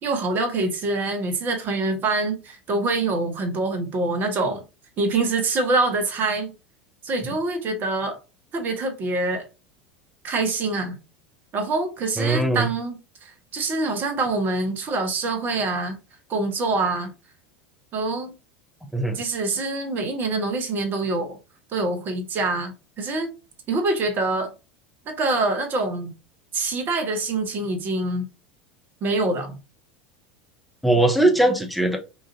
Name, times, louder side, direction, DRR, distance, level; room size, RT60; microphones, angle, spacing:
voice 1, 0.0-4.6 5.0-6.5 7.0-8.2 8.5-9.5 10.2-11.0 11.5-16.0 16.3-17.1 17.9-18.3 19.1-21.4 21.7-23.3 23.7-24.5 25.1-26.1 26.5-28.3 29.0-29.6, right 3 dB, 35° right, 0.8 m, -25 dB
voice 2, 12.2-12.7 18.9-19.2 30.8-32.0, right 1 dB, ahead, 0.7 m, -20 dB
3.9 x 2.5 x 2.5 m
figure-of-eight pair, 80°, 6 cm